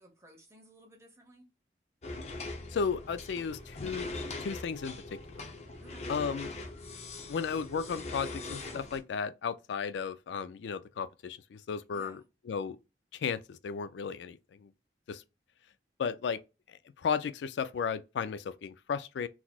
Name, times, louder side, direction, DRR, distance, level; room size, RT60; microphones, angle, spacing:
voice 1, 0.0-1.4 5.8-6.1 11.9-12.2, right 1 dB, 15° right, 1.0 m, -56 dB
sound 1, 2.0-9.0, left 2 dB, 40° left, 0.6 m, -41 dB
voice 2, 2.7-4.1 4.4-5.4 6.1-6.5 7.3-12.8 13.1-14.7 15.1-15.2 16.0-16.4 16.7-19.3, left 6 dB, 85° left, 0.3 m, -34 dB
3.9 x 3.0 x 2.3 m
head